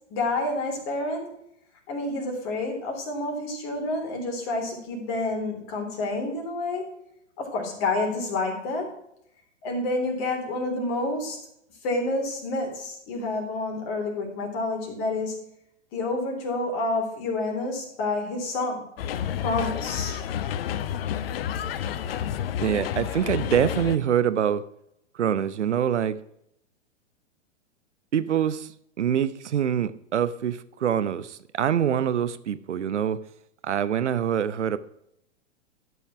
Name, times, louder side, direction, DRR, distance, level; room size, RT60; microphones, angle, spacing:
voice 1, 0.1-1.3 1.9-6.9 7.4-8.9 9.6-11.4 11.8-15.4 15.9-18.9 19.4-20.2, left 2 dB, 35° left, 3.5 m, -29 dB
sound 1, 19.0-24.0, left 9 dB, 55° left, 0.7 m, -30 dB
voice 2, 22.6-24.6 25.1-26.2 28.1-28.7 29.0-33.2 33.6-34.8, right 9 dB, 70° right, 0.8 m, -25 dB
12.5 x 5.7 x 6.0 m
figure-of-eight pair, 110°, 36 cm